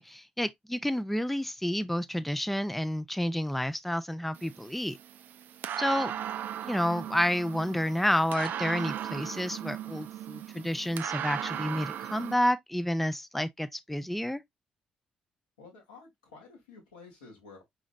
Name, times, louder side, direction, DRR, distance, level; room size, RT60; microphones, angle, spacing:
voice 1, 0.0-5.0 5.8-6.1 6.6-14.4, equal, 5° left, 0.5 m, -30 dB
sound 1, 4.3-12.3, right 10 dB, 60° right, 0.4 m, -37 dB
voice 2, 5.9-6.3 15.6-17.6, left 4 dB, 85° left, 1.9 m, -52 dB
5.1 x 3.9 x 2.3 m
figure-of-eight pair, 40°, 4 cm